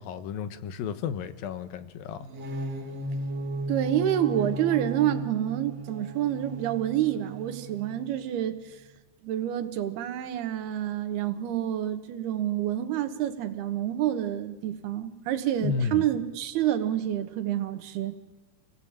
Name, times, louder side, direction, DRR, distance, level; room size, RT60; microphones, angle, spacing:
voice 1, 0.0-2.3 15.6-16.1, left 6 dB, 70° left, 11 dB, 2.4 m, -32 dB
sound 1, 2.2-8.1, right 2 dB, 45° right, 2.4 m, -35 dB
voice 2, 3.7-8.8 9.2-18.2, right 11 dB, 70° right, 9 dB, 3.1 m, -28 dB
28.0 x 18.5 x 8.8 m, 1.2 s
omnidirectional pair, 5.1 m